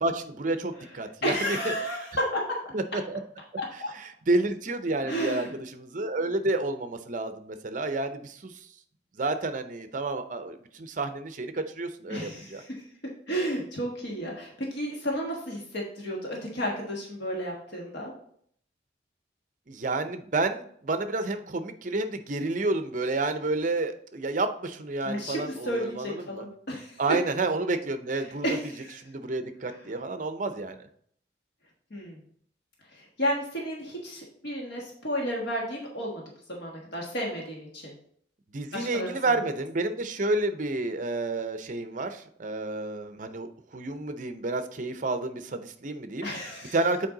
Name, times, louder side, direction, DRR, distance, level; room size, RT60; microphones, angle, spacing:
voice 1, 0.0-1.6 2.7-3.2 4.0-5.5 5.7-8.5 9.2-12.6 19.7-26.4 27.0-28.4 29.0-30.8 38.5-43.5 43.7-46.3 46.7-47.1, right 2 dB, 45° right, 9 dB, 0.6 m, -30 dB
voice 2, 1.2-2.4 3.6-3.9 5.0-5.5 12.1-12.8 13.3-18.1 25.0-27.0 28.2-29.0 29.6-29.8 31.9-32.2 32.9-36.2 36.5-37.9 38.7-39.1 46.2-46.8, equal, 65° left, -2 dB, 1.4 m, -32 dB
7.3 x 4.6 x 3.9 m, 0.63 s
head